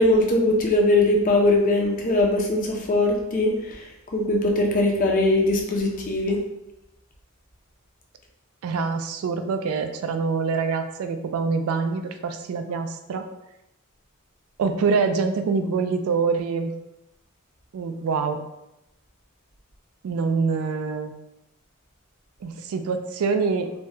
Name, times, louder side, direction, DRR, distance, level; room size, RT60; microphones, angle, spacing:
voice 1, 0.0-6.4, left 2 dB, 40° left, 0 dB, 0.5 m, -21 dB
voice 2, 8.6-13.3 14.6-16.7 17.7-18.4 20.0-21.1 22.4-23.7, right 5 dB, 75° right, 7 dB, 0.3 m, -25 dB
3.2 x 2.2 x 2.7 m, 0.89 s
head